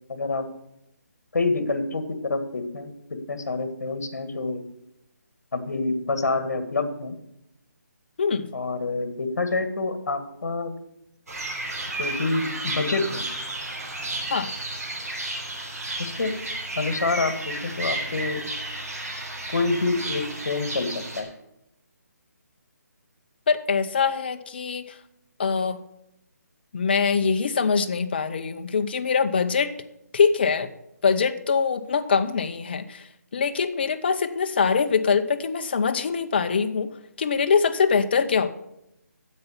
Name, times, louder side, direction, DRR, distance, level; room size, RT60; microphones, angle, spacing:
voice 1, 0.1-0.5 1.3-2.9 3.3-4.6 5.5-7.1 8.5-10.7 12.0-13.2 16.0-16.3 16.8-18.4 19.5-21.3, left 3 dB, 65° left, 9 dB, 1.8 m, -27 dB
voice 2, 8.2-8.5 14.3-14.5 23.5-25.0 25.4-25.8 26.7-29.7 30.1-30.7 31.0-33.1 33.3-38.5, left 5 dB, 35° left, 8 dB, 0.7 m, -23 dB
sound 1, 11.3-21.2, right 2 dB, 60° right, 3.9 m, -32 dB
9.5 x 8.1 x 6.9 m, 0.82 s
hypercardioid pair, 170°, 9 cm